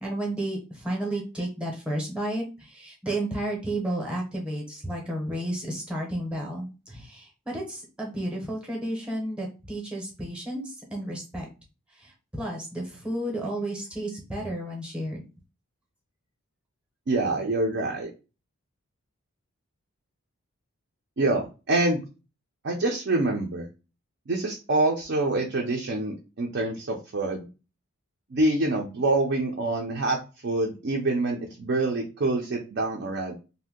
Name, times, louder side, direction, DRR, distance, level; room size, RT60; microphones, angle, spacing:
voice 1, 0.0-11.5 11.9-15.2, right 1 dB, 5° right, -1 dB, 0.7 m, -32 dB
voice 2, 17.1-18.1 21.2-22.0 22.6-23.7 24.3-27.5 28.3-30.2 30.4-33.4, right 2 dB, 50° right, 0 dB, 0.4 m, -26 dB
2.6 x 2.1 x 3.6 m, 0.31 s
head